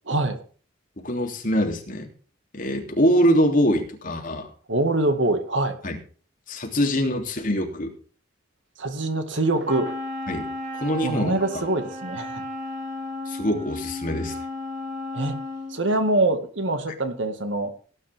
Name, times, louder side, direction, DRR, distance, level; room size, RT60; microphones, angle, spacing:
voice 1, 0.1-0.4 4.7-5.8 8.8-9.9 11.0-12.4 15.1-15.4 15.7-17.7, right 2 dB, 70° right, 7 dB, 2.1 m, -24 dB
voice 2, 1.0-2.1 2.5-4.5 5.8-6.0 6.5-7.9 10.3-10.5 10.8-11.3 13.3-14.3, equal, 45° left, 2 dB, 3.2 m, -23 dB
Wind instrument woodwind instrument, 9.6-15.8, left 2 dB, 45° right, 5.2 m, -34 dB
17.5 x 10.5 x 3.6 m, 0.41 s
head